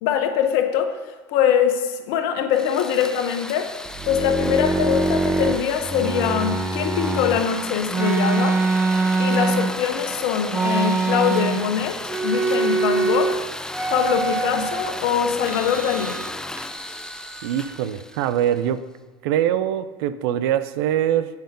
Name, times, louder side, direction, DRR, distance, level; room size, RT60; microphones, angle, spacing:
voice 1, 0.0-1.0 1.3-3.7 4.1-8.6 9.2-12.0 12.2-13.4 13.9-16.2, left 8 dB, 70° left, 6 dB, 1.0 m, -23 dB
sound 1, 2.5-18.7, left 2 dB, 5° left, 0.3 m, -34 dB
sound 2, 3.9-7.4 7.9-10.0 10.5-11.8 12.0-13.4 13.7-14.9 15.4-16.3 16.6-17.8, right 3 dB, 15° right, 0.7 m, -24 dB
voice 2, 17.4-18.8 19.2-21.3, right 10 dB, 75° right, 13 dB, 0.5 m, -23 dB
7.9 x 5.2 x 5.2 m, 1.4 s
hypercardioid pair, 85°, 13 cm